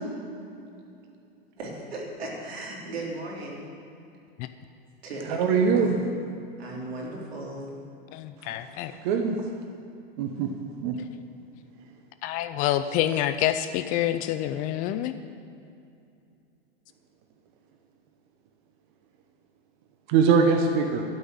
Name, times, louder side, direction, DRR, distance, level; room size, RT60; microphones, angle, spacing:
voice 1, 1.6-3.7 5.0-6.1 6.6-7.8, right 2 dB, 90° right, -3 dB, 3.5 m, -36 dB
voice 2, 5.3-5.9 9.0-9.3 10.2-10.5 10.8-11.0 20.1-21.0, right 5 dB, 50° right, 4 dB, 1.0 m, -22 dB
voice 3, 8.1-8.9 12.2-15.1, left 12 dB, 30° left, 10 dB, 0.3 m, -27 dB
12.5 x 5.5 x 8.9 m, 2.5 s
hypercardioid pair, 130°, 30 cm